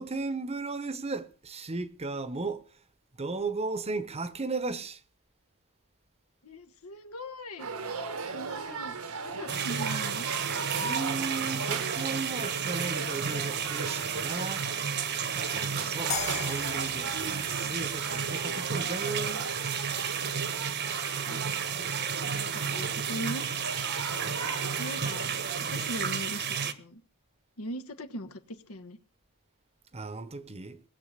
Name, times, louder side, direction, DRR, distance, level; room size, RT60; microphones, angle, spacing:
voice 1, 0.0-2.8 3.1-5.0 10.8-14.7 15.3-19.4 29.9-30.8, right 3 dB, 30° right, 0.9 m, -36 dB
voice 2, 6.4-7.7 8.3-10.3 15.6-15.7 21.2-21.4 22.2-23.5 24.7-25.4 25.7-27.0 27.6-29.0, equal, 80° left, 1.4 m, -40 dB
sound 1, 7.6-25.6, right 4 dB, 85° right, 1.5 m, -38 dB
sound 2, 9.5-26.7, right 7 dB, 50° right, 1.1 m, -32 dB
sound 3, 16.1-19.2, left 5 dB, 30° left, 1.6 m, -39 dB
19.0 x 7.4 x 6.7 m
head